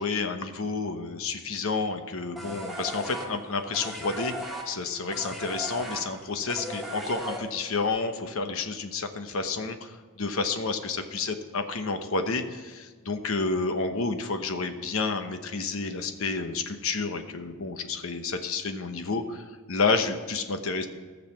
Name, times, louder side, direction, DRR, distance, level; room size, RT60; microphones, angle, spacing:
voice 1, 0.0-4.3 4.6-20.9, left 4 dB, 70° left, 7 dB, 1.0 m, -30 dB
sound 1, 2.4-7.9, equal, ahead, 1.6 m, -37 dB
17.0 x 6.7 x 5.9 m, 1.4 s
head